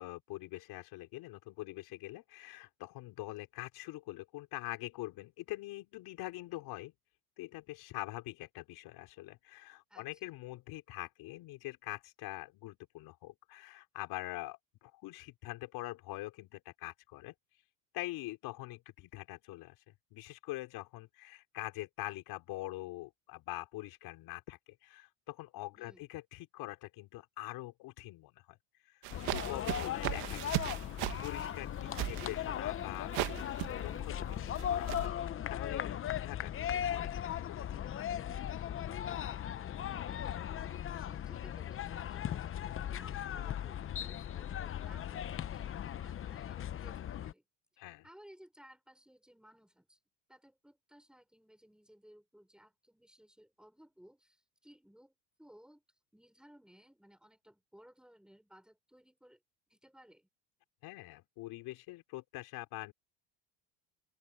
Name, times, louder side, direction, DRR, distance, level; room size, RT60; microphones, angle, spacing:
voice 1, 0.0-6.9 7.4-17.3 17.9-19.8 20.1-28.6 28.8-29.0 29.3-30.7 31.2-37.7 38.0-38.1 47.8-48.1 60.8-62.9, left 18 dB, 65° left, 4.8 m, -44 dB
voice 2, 25.7-26.1 39.6-40.4 40.9-47.4 48.0-50.0 50.3-55.8 56.1-59.4 59.7-60.3, equal, ahead, 6.5 m, -60 dB
sound 1, 29.0-35.1, right 21 dB, 70° right, 1.6 m, -38 dB
sound 2, 29.1-47.3, left 10 dB, 30° left, 0.8 m, -38 dB
open air
supercardioid pair, 110°, 41 cm